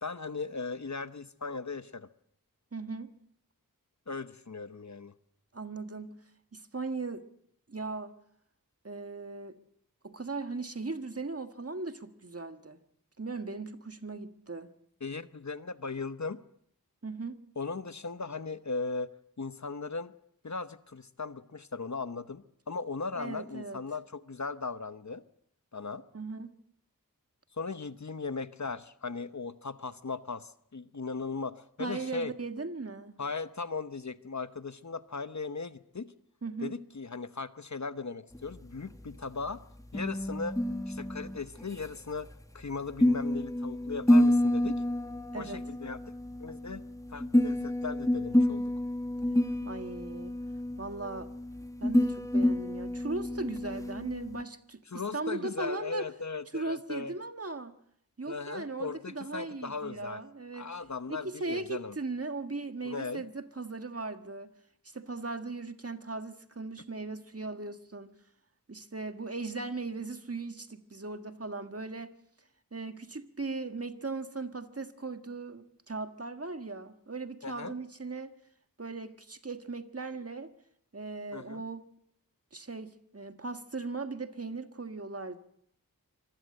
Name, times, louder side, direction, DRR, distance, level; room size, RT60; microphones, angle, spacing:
voice 1, 0.0-2.1 4.1-5.1 15.0-16.4 17.6-19.1 19.4-20.1 20.4-25.2 25.7-26.0 27.5-32.3 33.2-36.1 36.6-39.6 39.9-40.6 40.9-42.3 42.5-44.8 45.3-46.0 46.4-48.7 54.9-57.1 58.3-60.2 60.5-61.9 62.8-63.2 77.4-77.7 81.3-81.6, left 4 dB, 55° left, 12 dB, 1.0 m, -38 dB
voice 2, 2.7-3.1 5.5-6.2 6.5-7.2 7.7-8.1 8.8-9.6 10.0-12.8 13.2-14.7 17.0-17.4 23.1-23.8 26.1-26.5 31.8-33.2 36.4-36.7 45.3-45.6 49.6-50.4 50.8-51.3 51.8-56.0 56.5-57.7 58.2-60.7 61.1-64.5 64.8-68.1 68.7-72.1 72.7-78.3 78.8-80.5 80.9-81.8 82.5-85.4, right 3 dB, 45° right, 8 dB, 1.6 m, -38 dB
sound 1, 38.3-54.4, left 1 dB, 10° left, 1.2 m, -29 dB
25.0 x 19.5 x 7.8 m, 0.72 s
wide cardioid pair, 55°, 34 cm